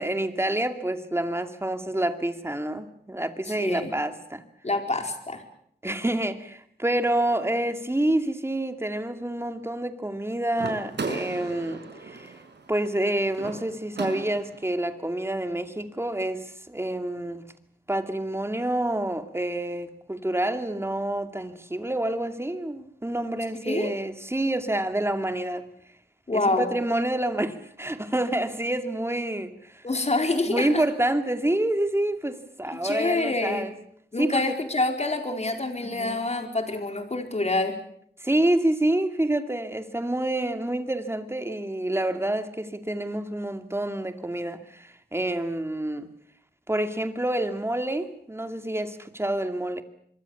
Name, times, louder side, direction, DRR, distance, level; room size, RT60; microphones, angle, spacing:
voice 1, 0.0-4.4 5.8-12.3 12.7-17.4 17.9-25.7 26.3-29.8 30.5-33.7 34.2-34.6 35.8-36.3 38.2-46.1 46.7-49.8, right 1 dB, 15° right, 2.4 m, -28 dB
voice 2, 3.6-3.9 4.6-5.4 23.6-23.9 26.3-26.7 29.8-30.8 32.8-33.7 34.1-37.8, left 2 dB, 35° left, 4.4 m, -26 dB
sound 1, 10.5-14.7, right 3 dB, 70° right, 5.4 m, -36 dB
25.0 x 23.0 x 7.2 m
wide cardioid pair, 85°, 18 cm